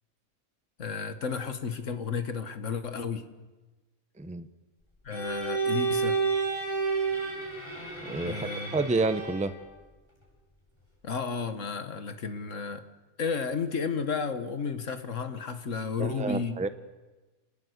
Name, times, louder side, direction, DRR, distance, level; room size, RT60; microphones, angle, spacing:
voice 1, 0.8-3.3 5.0-6.2 8.2-8.8 11.0-12.9 13.2-16.7, left 5 dB, 60° left, 10 dB, 1.7 m, -32 dB
voice 2, 4.2-4.5 8.0-9.5 16.0-16.7, right 3 dB, 5° right, 12 dB, 0.7 m, -29 dB
Bowed string instrument, 5.1-9.6, right 4 dB, 15° left, 7.3 m, -30 dB
27.0 x 18.5 x 8.0 m, 1.2 s
omnidirectional pair, 1.5 m